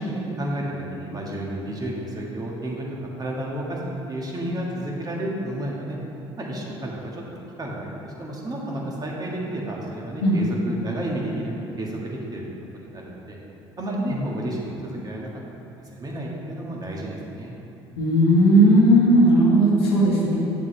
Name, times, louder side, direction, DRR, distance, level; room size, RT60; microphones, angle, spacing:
voice 1, 0.1-2.9 3.2-3.8 4.1-6.0 6.4-7.2 7.6-12.4 12.7-13.4 13.8-15.3 15.9-17.5, right 1 dB, 30° right, -3 dB, 1.7 m, -31 dB
voice 2, 18.0-20.4, right 1 dB, 90° left, -4 dB, 1.4 m, -16 dB
8.1 x 7.1 x 3.3 m, 3.0 s
hypercardioid pair, 65°, 13 cm